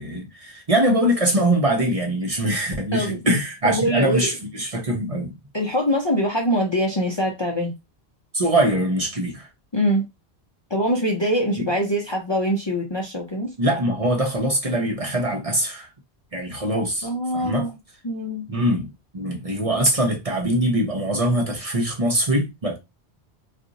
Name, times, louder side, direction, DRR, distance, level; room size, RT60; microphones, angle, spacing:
voice 1, 0.0-5.4 8.3-9.5 11.6-11.7 13.6-15.9 16.3-17.7 18.5-22.8, right 1 dB, 35° right, 0.8 m, -23 dB
voice 2, 3.6-4.3 5.5-7.7 9.7-10.1 10.7-13.5 17.0-17.7 18.0-18.5, equal, 30° left, 0.6 m, -23 dB
2.5 x 2.5 x 3.8 m
omnidirectional pair, 1.1 m